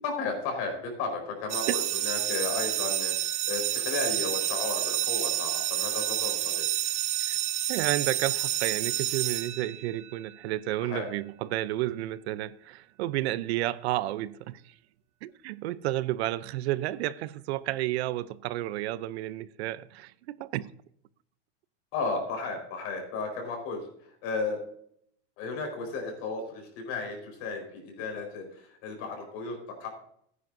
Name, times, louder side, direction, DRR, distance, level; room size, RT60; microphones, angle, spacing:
voice 1, 0.0-6.6 10.8-11.1 21.9-23.8 24.2-24.6 25.4-29.9, left 4 dB, 45° left, 3 dB, 4.5 m, -34 dB
sound 1, 1.5-10.2, right 12 dB, 20° right, 0.4 m, -29 dB
voice 2, 7.7-14.7 15.2-20.7, right 15 dB, 75° right, 17 dB, 0.6 m, -31 dB
15.5 x 9.8 x 2.6 m, 0.67 s
supercardioid pair, 160°, 33 cm